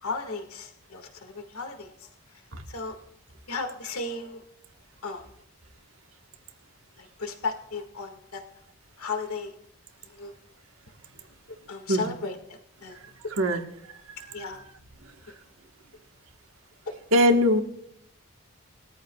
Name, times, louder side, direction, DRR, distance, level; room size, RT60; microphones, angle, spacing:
voice 1, 0.0-2.1 2.7-3.0 3.5-4.4 5.0-5.3 7.0-8.4 9.0-9.5 10.1-10.3 11.7-13.0 14.3-14.6, left 4 dB, 75° left, 5 dB, 1.9 m, -35 dB
voice 2, 17.1-17.6, equal, 65° right, 5 dB, 1.4 m, -20 dB
21.0 x 14.0 x 2.3 m, 0.74 s
head